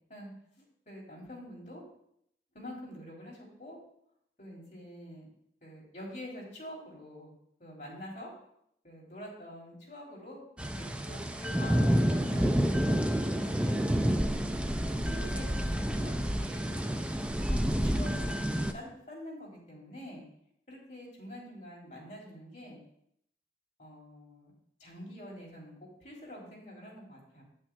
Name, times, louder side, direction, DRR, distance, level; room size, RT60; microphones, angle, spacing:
voice 1, 0.9-1.8 2.5-3.8 4.4-5.3 5.6-7.3 7.6-8.3 8.8-10.4 10.7-13.8 14.6-16.8 17.5-20.2 20.7-22.8 23.8-24.5 24.8-27.4, equal, 40° left, -4 dB, 3.0 m, -46 dB
sound 1, 10.6-18.7, equal, 5° right, 0.3 m, -29 dB
8.8 x 8.6 x 2.2 m, 0.72 s
head